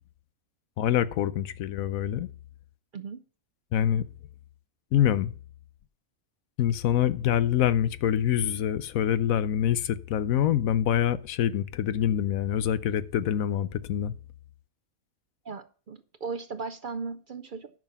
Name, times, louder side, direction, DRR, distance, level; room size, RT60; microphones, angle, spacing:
voice 1, 0.8-2.3 3.7-4.0 4.9-5.3 6.6-14.1, left 10 dB, 90° left, 1.1 m, -25 dB
voice 2, 15.4-17.7, right 4 dB, 50° right, 0.6 m, -37 dB
10.5 x 6.2 x 5.8 m
omnidirectional pair, 1.4 m